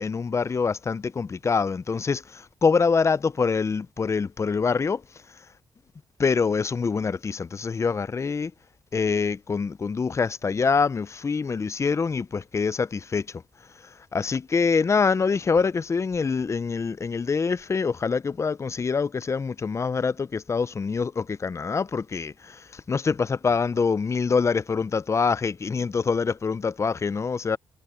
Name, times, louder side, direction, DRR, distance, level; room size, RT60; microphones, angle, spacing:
voice 1, 0.0-5.0 6.2-8.5 8.9-13.3 14.1-27.6, left 5 dB, 35° left, 0.7 m, -25 dB
supercardioid pair, 55°, 8 cm